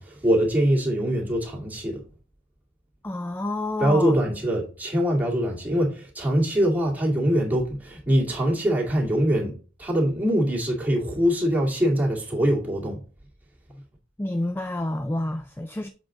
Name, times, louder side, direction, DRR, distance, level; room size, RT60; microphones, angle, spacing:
voice 1, 0.0-2.0 3.8-13.0, equal, 10° right, 2.1 m, -23 dB
voice 2, 3.0-4.2 14.2-15.9, left 1 dB, 10° left, 0.3 m, -28 dB
7.5 x 5.0 x 3.7 m
head